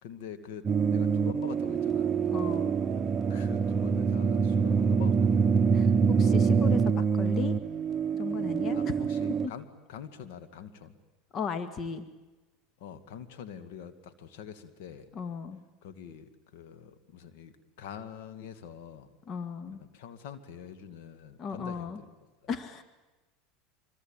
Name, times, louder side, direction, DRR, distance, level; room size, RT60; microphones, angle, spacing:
voice 1, 0.0-2.1 3.3-5.6 8.7-10.9 12.8-15.1 15.8-19.1 19.7-22.1 22.4-22.5, left 8 dB, 70° left, 10 dB, 2.2 m, -45 dB
sound 1, 0.6-9.5, right 6 dB, 30° right, 1.0 m, -25 dB
voice 2, 2.3-2.7 5.7-7.6 8.1-8.9 11.3-12.1 15.2-15.6 19.3-19.8 21.4-22.0 22.5-22.8, left 6 dB, 40° left, 10 dB, 1.8 m, -36 dB
25.0 x 24.0 x 9.1 m, 1.2 s
hypercardioid pair, 100°, 0 cm